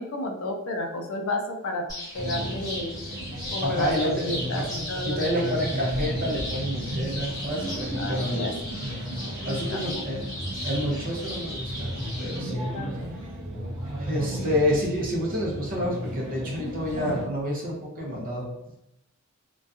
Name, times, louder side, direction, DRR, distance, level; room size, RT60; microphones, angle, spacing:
voice 1, 0.0-1.9 2.1-3.0 3.5-5.6 8.0-8.5 9.5-10.3 12.4-13.1, left 1 dB, 60° left, 3 dB, 0.4 m, -32 dB
sound 1, 1.9-12.4, left 1 dB, 15° left, 1.2 m, -37 dB
sound 2, 2.1-17.3, right 1 dB, 80° right, 0.8 m, -34 dB
voice 2, 3.6-4.3 4.6-4.7 5.0-8.5 9.4-11.9 12.2-12.7 14.0-18.5, equal, 40° right, -3 dB, 0.6 m, -29 dB
2.6 x 2.2 x 2.4 m, 0.87 s
head